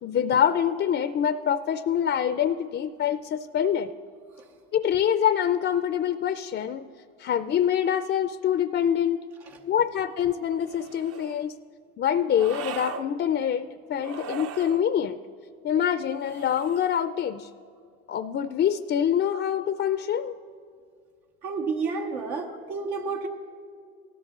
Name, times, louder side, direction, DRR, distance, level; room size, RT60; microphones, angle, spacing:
voice 1, 0.0-3.9 4.7-6.9 7.2-9.2 9.7-11.5 12.0-15.2 15.6-17.5 18.1-20.4, left 9 dB, 35° left, 12 dB, 0.4 m, -25 dB
sound 1, 10.6-11.4 12.3-13.1 14.0-14.8 16.2-17.0, right 7 dB, 45° right, 0.6 m, -39 dB
voice 2, 21.4-23.3, right 4 dB, 90° right, 1 dB, 1.3 m, -30 dB
17.5 x 13.0 x 2.4 m, 2.2 s
hypercardioid pair, 70°, 33 cm